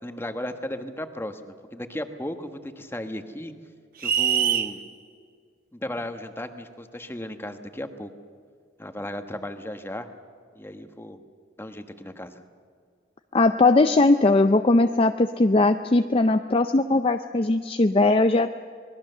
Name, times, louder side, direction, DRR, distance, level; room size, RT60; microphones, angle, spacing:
voice 1, 0.0-3.5 4.0-4.8 5.7-8.1 8.8-10.1 10.5-11.2 11.6-12.4, left 1 dB, 10° left, 7 dB, 1.3 m, -35 dB
sound 1, 4.0-4.7, right 8 dB, 50° right, 1.0 m, -23 dB
voice 2, 13.3-18.5, left 2 dB, 30° left, 8 dB, 0.5 m, -19 dB
26.5 x 21.0 x 6.8 m, 2.1 s
head